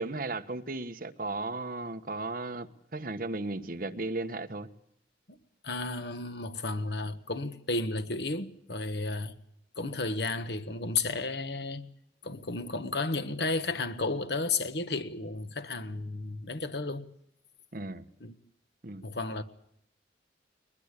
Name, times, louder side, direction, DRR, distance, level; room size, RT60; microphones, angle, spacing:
voice 1, 0.0-4.7 17.7-18.0 18.8-19.1, right 2 dB, 50° right, 1.3 m, -35 dB
voice 2, 5.6-9.3 9.8-11.9 12.2-17.1 18.2-18.4 19.0-19.4, left 3 dB, 60° left, 1.4 m, -33 dB
21.5 x 21.0 x 8.3 m
head